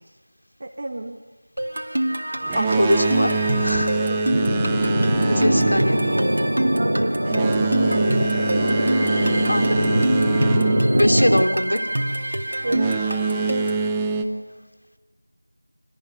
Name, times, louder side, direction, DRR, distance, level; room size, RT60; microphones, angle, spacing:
voice 1, 0.6-1.2 3.9-4.4 6.5-8.5 10.6-11.1 12.6-13.0, right 2 dB, 35° right, 0 dB, 1.5 m, -32 dB
sound 1, 1.6-13.9, right 1 dB, 60° right, 2.5 m, -27 dB
Boat Water vehicle, 2.4-11.9 12.6-14.2, right 4 dB, 5° right, 0.7 m, -26 dB
voice 2, 2.5-4.0 5.3-6.0 9.5-9.9 10.9-11.9, left 1 dB, 80° left, 5 dB, 2.9 m, -22 dB
sound 2, 4.3-11.5, equal, 85° right, 0.9 m, -22 dB
24.5 x 19.5 x 9.5 m, 1.4 s
figure-of-eight pair, 175°, 0 cm